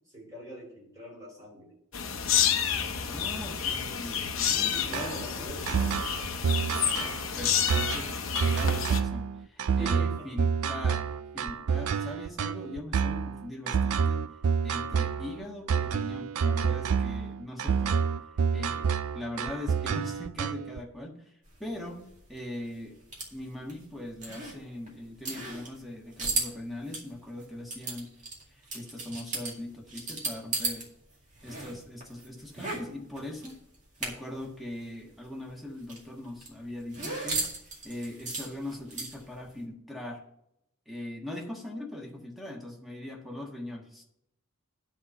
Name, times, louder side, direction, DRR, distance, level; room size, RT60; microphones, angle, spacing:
voice 1, 0.1-1.7 4.6-5.9 9.8-10.4, equal, 15° right, -4 dB, 4.0 m, -42 dB
sound 1, 1.9-9.0, left 8 dB, 65° left, 0.8 m, -29 dB
voice 2, 2.9-5.1 6.9-14.3 14.6-18.1 18.5-18.9 19.1-21.3 21.6-23.0 23.3-28.2 28.5-30.9 31.4-33.6 34.0-37.5 37.8-40.2 40.9-44.0, left 1 dB, ahead, -1 dB, 1.5 m, -41 dB
sound 2, 4.9-20.8, right 6 dB, 80° right, 0.5 m, -28 dB
sound 3, 21.5-30.9 31.1-34.5 34.7-34.8 35.1-39.4, right 3 dB, 35° right, 2.1 m, -36 dB
9.8 x 4.3 x 7.3 m, 0.78 s
head